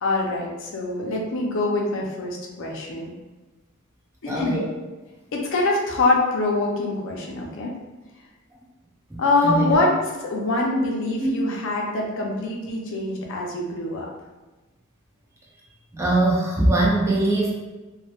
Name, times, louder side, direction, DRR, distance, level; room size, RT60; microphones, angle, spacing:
voice 1, 0.0-3.1 4.2-4.6 5.3-7.7 9.2-10.0 10.2-14.1, left 2 dB, 60° left, -1 dB, 0.5 m, -24 dB
voice 2, 4.3-4.6 9.4-9.8 11.2-11.3 15.9-17.6, right 2 dB, 15° right, -4 dB, 0.4 m, -21 dB
2.2 x 2.0 x 2.8 m, 1.2 s
head